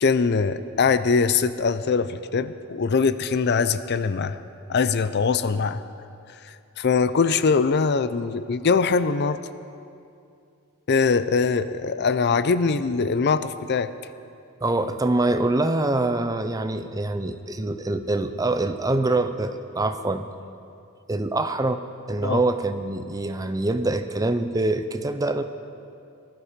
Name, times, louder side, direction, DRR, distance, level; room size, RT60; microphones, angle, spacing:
voice 1, 0.0-4.4 4.7-5.8 6.4-9.4 10.9-13.9 22.2-22.4, left 5 dB, 50° left, 13 dB, 0.5 m, -22 dB
voice 2, 14.6-20.2 21.1-21.8 22.1-25.4, right 2 dB, 15° right, 9 dB, 0.6 m, -24 dB
19.5 x 13.0 x 5.2 m, 2.5 s
head